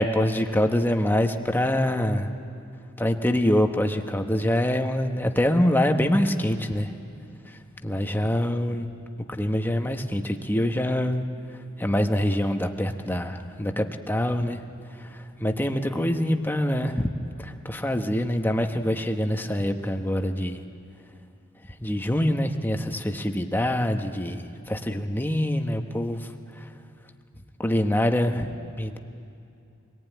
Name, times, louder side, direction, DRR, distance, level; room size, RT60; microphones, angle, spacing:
voice 1, 0.0-2.3 3.0-6.9 7.8-8.9 9.3-11.2 11.8-14.6 15.0-15.1 15.4-17.1 17.4-20.6 21.8-24.4 24.7-26.3 26.6-26.7 27.6-28.5 28.8-29.0, left 1 dB, 10° left, 5 dB, 1.1 m, -25 dB
25.5 x 18.5 x 9.2 m, 2.6 s
head